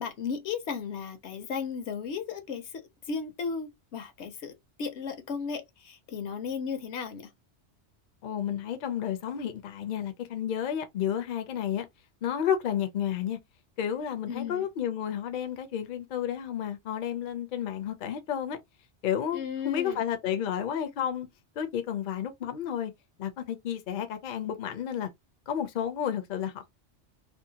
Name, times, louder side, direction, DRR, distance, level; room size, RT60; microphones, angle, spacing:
voice 1, 0.0-7.3 14.3-14.7 19.3-20.0, left 6 dB, 75° left, 0.9 m, -35 dB
voice 2, 8.2-11.9 12.2-13.4 13.8-18.6 19.0-21.3 21.6-22.9 23.2-25.1 25.5-26.7, left 9 dB, 55° left, 0.6 m, -31 dB
2.6 x 2.1 x 2.7 m
omnidirectional pair, 1.2 m